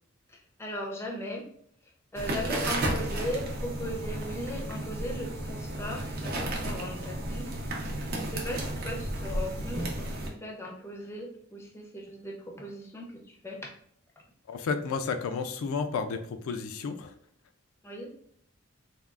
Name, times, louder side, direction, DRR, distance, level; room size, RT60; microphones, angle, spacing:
voice 1, 0.3-1.5 2.1-13.7 17.8-18.1, equal, 10° left, -1 dB, 0.4 m, -38 dB
sound 1, 2.2-10.3, right 1 dB, 45° right, 0.5 m, -33 dB
voice 2, 14.5-17.1, left 5 dB, 85° left, 8 dB, 0.3 m, -32 dB
3.5 x 2.3 x 2.3 m, 0.65 s
head